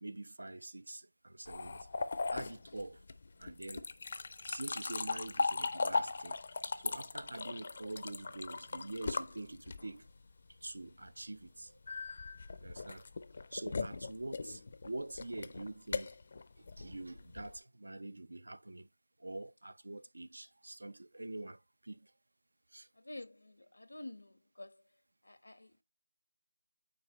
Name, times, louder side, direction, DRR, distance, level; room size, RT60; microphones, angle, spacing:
voice 1, 0.0-1.9 2.3-3.0 3.4-3.9 4.4-6.4 6.8-10.1 10.5-11.8 12.6-13.1 13.5-16.2 16.6-18.9 19.2-22.1 22.7-22.9, right 2 dB, 75° right, 0.6 m, -45 dB
sound 1, 1.5-10.1 11.9-17.6, left 4 dB, 40° left, 0.5 m, -38 dB
voice 2, 23.0-24.8 25.2-25.7, left 2 dB, 85° left, 1.0 m, -49 dB
8.9 x 3.7 x 3.1 m
figure-of-eight pair, 170°, 0 cm